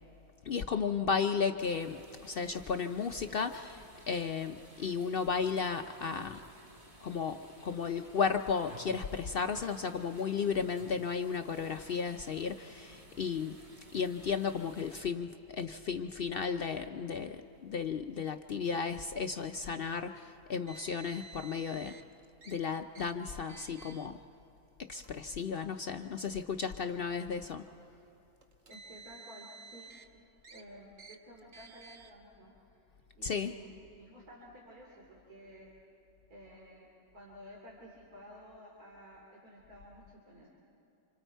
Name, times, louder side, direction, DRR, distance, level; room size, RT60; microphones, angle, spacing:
voice 1, 0.4-6.4 7.0-13.6 13.9-22.0 22.5-24.2 24.9-27.6 33.2-33.5, left 6 dB, 60° left, 7 dB, 0.6 m, -34 dB
sound 1, 1.7-15.0, right 1 dB, 25° right, 1.4 m, -55 dB
Car, 20.7-22.0 22.4-22.6 22.9-23.1 23.5-24.1 24.9-25.1 26.0-26.1 28.4-30.1 30.4-30.6 31.0-31.2 31.5-32.1, right 4 dB, 50° right, 1.3 m, -52 dB
voice 2, 28.6-29.9 30.2-32.5 33.2-35.7 36.3-40.5, equal, 75° right, -3 dB, 3.4 m, -53 dB
29.0 x 27.0 x 4.5 m, 3.0 s
omnidirectional pair, 1.6 m